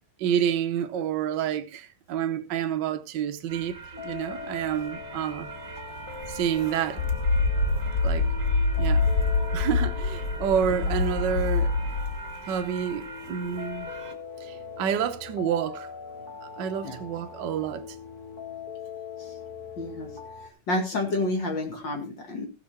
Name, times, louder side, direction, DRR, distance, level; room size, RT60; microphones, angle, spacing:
voice 1, 0.2-3.7 4.0-5.5 6.3-7.0 8.0-8.2 8.8-9.0 9.5-11.7 12.5-13.9 14.5-15.9 16.6-17.8, right 8 dB, 80° right, 0.9 m, -28 dB
sound 1, 3.5-14.1, right 5 dB, 40° right, 1.3 m, -40 dB
sound 2, 3.9-20.5, left 6 dB, 20° left, 1.5 m, -42 dB
sound 3, 7.0-12.3, left 3 dB, 80° left, 0.6 m, -25 dB
voice 2, 19.8-20.1 20.7-22.5, left 2 dB, 40° left, 2.5 m, -29 dB
15.5 x 6.4 x 4.3 m
omnidirectional pair, 3.5 m